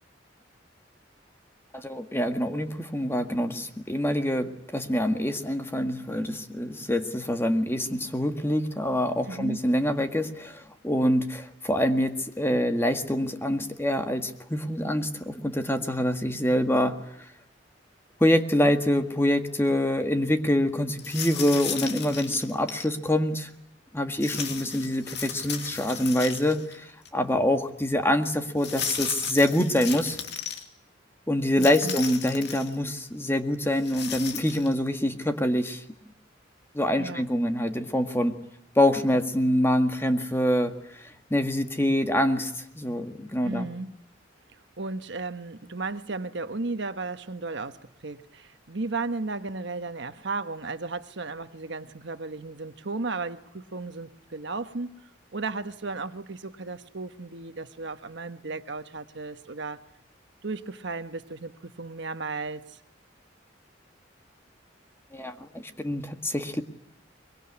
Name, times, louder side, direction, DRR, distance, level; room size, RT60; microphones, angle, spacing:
voice 1, 1.7-17.0 18.2-23.5 23.9-30.2 31.3-35.8 36.7-38.4 38.8-43.7 65.1-66.6, left 1 dB, 15° left, 6 dB, 1.8 m, -25 dB
voice 2, 9.3-9.6 31.6-32.0 37.0-37.3 43.4-43.9 44.5-54.9 55.3-59.8 60.4-62.8, right 3 dB, 70° right, 9 dB, 1.3 m, -34 dB
sound 1, 21.0-22.9 24.2-26.8 27.1-27.2 28.6-30.6 31.5-32.8 33.7-34.7, left 7 dB, 60° left, 2.5 m, -35 dB
23.5 x 22.5 x 9.8 m, 0.77 s
head